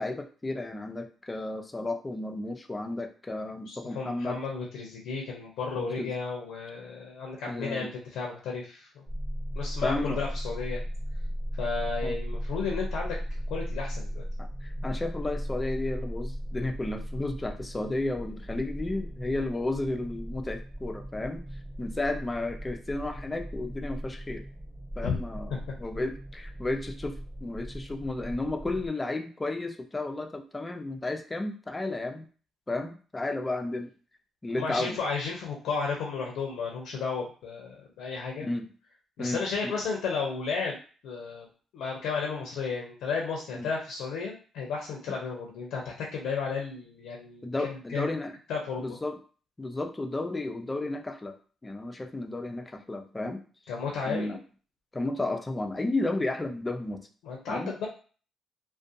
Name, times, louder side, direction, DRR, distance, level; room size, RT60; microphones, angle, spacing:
voice 1, 0.0-4.4 5.8-6.1 7.5-7.9 9.8-10.2 12.0-12.2 14.4-21.4 21.8-24.4 25.0-32.3 32.7-33.9 34.4-35.0 38.4-38.7 39.2-39.8 43.5-43.7 47.4-48.3 48.8-49.2 49.6-51.4 51.6-53.4 54.0-54.4 54.9-57.1 57.5-57.7, left 2 dB, 20° left, 5 dB, 0.4 m, -33 dB
voice 2, 3.7-9.0 9.5-10.8 11.6-13.2 13.5-14.2 25.0-25.1 25.5-25.6 34.5-38.5 39.2-41.5 41.7-48.1 48.5-49.0 53.7-54.4 57.2-57.9, left 5 dB, 85° left, -1 dB, 0.5 m, -33 dB
sound 1, 9.1-28.9, equal, 20° right, 0.9 m, -37 dB
2.4 x 2.2 x 2.6 m, 0.39 s
supercardioid pair, 70°, 0 cm